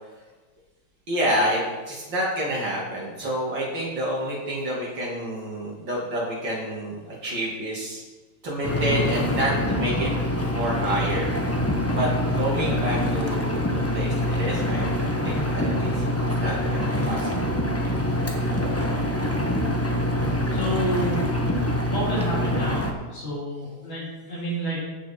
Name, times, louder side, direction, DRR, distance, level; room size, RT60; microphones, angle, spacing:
voice 1, 1.1-8.0 8.4-10.1 10.5-11.3 11.9-12.1 12.4-13.6 13.9-16.1 16.4-17.5, equal, 65° right, -5 dB, 3.0 m, -28 dB
Engine, 8.6-22.9, left 1 dB, 15° left, 0.6 m, -25 dB
voice 2, 20.5-21.2 21.9-22.8 23.1-24.8, right 1 dB, 85° left, -10 dB, 4.2 m, -29 dB
15.5 x 6.2 x 4.3 m, 1.3 s
omnidirectional pair, 2.1 m